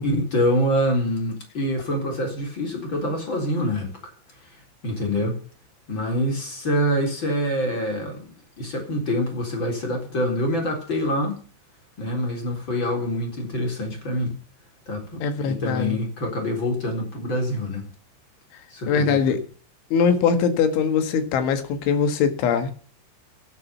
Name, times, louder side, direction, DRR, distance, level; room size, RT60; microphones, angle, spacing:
voice 1, 0.0-4.1 4.8-5.4 5.9-8.3 8.6-11.4 12.0-14.4 14.9-17.9 18.7-19.3, equal, 25° left, 4.1 m, -25 dB
voice 2, 15.2-16.0 18.9-19.4 19.9-22.7, left 6 dB, 75° left, 4.1 m, -21 dB
17.5 x 8.3 x 6.9 m
omnidirectional pair, 5.6 m